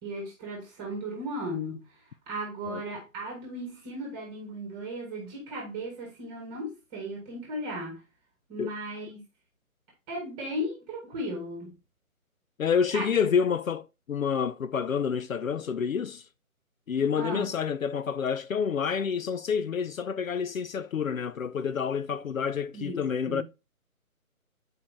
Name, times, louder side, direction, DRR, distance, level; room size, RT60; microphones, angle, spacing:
voice 1, 0.0-1.9 2.3-8.0 8.5-9.2 10.1-11.7 12.9-13.1 17.2-17.5 22.7-23.4, equal, 10° right, 1.3 m, -36 dB
voice 2, 12.6-16.2 16.9-23.4, left 6 dB, 65° left, 0.5 m, -28 dB
8.1 x 4.5 x 3.2 m
figure-of-eight pair, 150°, 43 cm